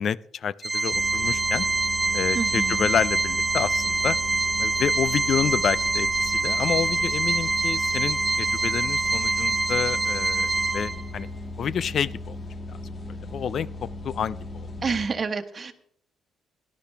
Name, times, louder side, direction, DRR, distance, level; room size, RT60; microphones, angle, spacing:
voice 1, 0.0-1.7 2.1-4.2 4.6-11.3 11.6-12.4 13.1-14.7, left 8 dB, 60° left, 20 dB, 0.4 m, -29 dB
Organ, 0.6-11.2, right 3 dB, 25° right, 0.8 m, -25 dB
sound 1, 0.9-15.1, left 2 dB, 40° left, 1.4 m, -37 dB
voice 2, 2.3-2.9 14.8-15.7, right 5 dB, 40° right, 5 dB, 1.3 m, -28 dB
18.0 x 12.0 x 3.5 m, 0.67 s
cardioid pair, 90°, 0 cm